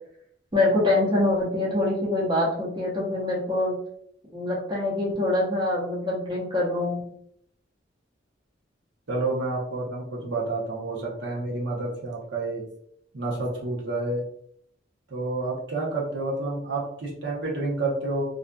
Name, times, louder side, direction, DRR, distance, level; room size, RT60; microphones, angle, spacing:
voice 1, 0.5-3.7 4.3-7.1, left 2 dB, 25° right, -5 dB, 0.7 m, -25 dB
voice 2, 9.1-12.6 13.1-14.2 15.1-18.2, right 2 dB, 65° right, -4 dB, 0.8 m, -29 dB
2.5 x 2.3 x 2.2 m, 0.68 s
head